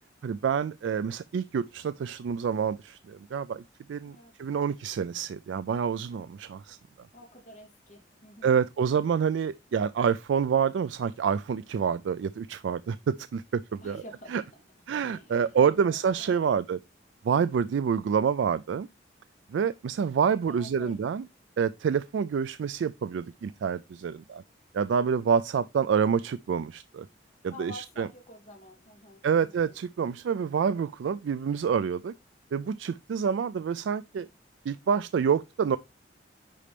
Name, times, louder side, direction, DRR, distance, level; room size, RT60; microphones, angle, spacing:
voice 1, 0.2-3.6 3.9-6.8 8.4-14.0 14.3-14.4 14.9-16.8 17.2-18.9 19.5-21.2 21.6-24.4 24.7-27.1 27.4-28.1 29.2-32.1 32.5-34.3 34.7-35.8, right 7 dB, 80° right, 0.3 m, -27 dB
voice 2, 7.1-8.6 13.8-14.5 15.1-15.6 15.9-16.4 20.5-21.0 27.5-29.8, left 1 dB, 40° left, 2.4 m, -49 dB
10.0 x 4.3 x 3.3 m
head